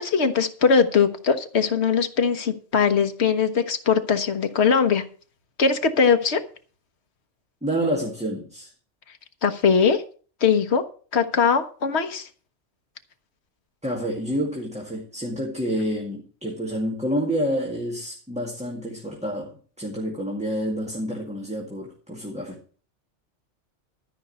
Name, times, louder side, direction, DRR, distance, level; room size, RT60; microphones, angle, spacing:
voice 1, 0.0-5.0 5.6-6.4 9.4-10.0 10.4-10.8 11.1-12.3, left 6 dB, 65° left, 7 dB, 1.4 m, -21 dB
voice 2, 7.6-8.7 13.8-22.6, equal, 5° right, -1 dB, 2.0 m, -28 dB
13.0 x 5.4 x 7.9 m, 0.41 s
omnidirectional pair, 1.2 m